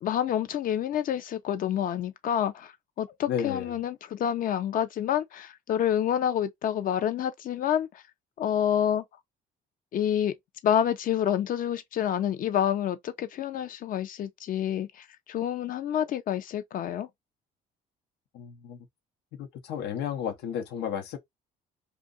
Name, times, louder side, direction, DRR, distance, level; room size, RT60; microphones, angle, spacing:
voice 1, 0.0-8.0 8.4-9.0 9.9-10.3 10.6-17.1, left 10 dB, 55° left, 0.6 m, -28 dB
voice 2, 3.3-3.7 18.3-18.8 19.4-21.2, left 8 dB, 80° left, 0.9 m, -33 dB
2.7 x 2.4 x 3.8 m
cardioid pair, 110°, 17 cm